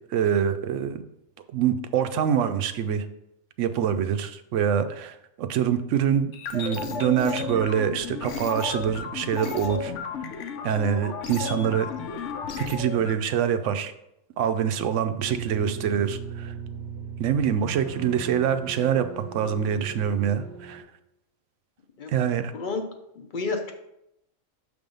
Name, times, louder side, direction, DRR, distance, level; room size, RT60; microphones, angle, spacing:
voice 1, 0.1-1.0 1.5-3.0 3.6-9.9 10.6-11.9 12.6-13.9 14.4-16.5 17.2-20.8 22.1-22.5, right 8 dB, 70° right, 10 dB, 0.9 m, -25 dB
sound 1, 6.3-13.1, left 6 dB, 70° left, 1.0 m, -33 dB
sound 2, 15.2-20.8, right 6 dB, 20° right, 0.7 m, -38 dB
voice 2, 23.2-23.7, left 3 dB, 45° left, 4 dB, 0.7 m, -30 dB
6.6 x 3.5 x 5.2 m, 0.82 s
omnidirectional pair, 1.4 m